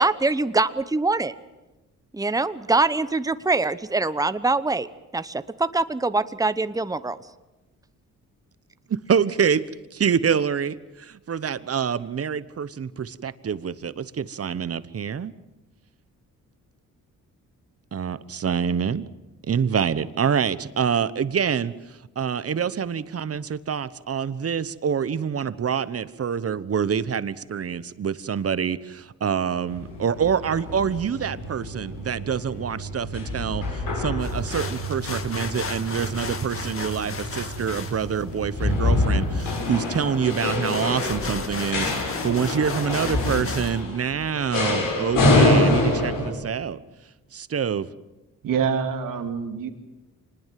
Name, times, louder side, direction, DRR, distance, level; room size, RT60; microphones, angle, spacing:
voice 1, 0.0-1.3 2.1-4.9 5.1-7.2, right 3 dB, 10° right, 13 dB, 1.0 m, -23 dB
voice 2, 9.1-9.6 9.9-15.3 17.9-19.0 19.5-21.7 22.2-46.8 47.3-47.9, right 7 dB, 45° right, 15 dB, 1.1 m, -26 dB
sound 1, 29.7-46.3, left 2 dB, 85° left, 7.4 m, -26 dB
sound 2, 34.2-43.8, left 4 dB, 40° left, 2.3 m, -36 dB
voice 3, 48.4-49.7, right 6 dB, 85° right, 6 dB, 2.4 m, -26 dB
25.5 x 20.5 x 7.7 m, 1.0 s
cardioid pair, 80°, 32 cm